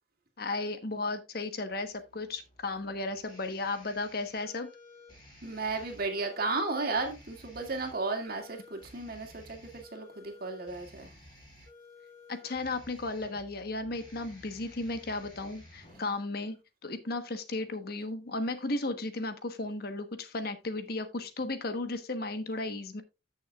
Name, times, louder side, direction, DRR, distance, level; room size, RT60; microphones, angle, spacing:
voice 1, 0.4-4.7 12.3-23.0, left 2 dB, 55° left, 1.2 m, -35 dB
sound 1, 1.7-16.2, left 2 dB, 25° left, 6.3 m, -54 dB
voice 2, 5.4-11.1, right 3 dB, 55° right, 2.2 m, -34 dB
14.0 x 6.4 x 2.4 m
head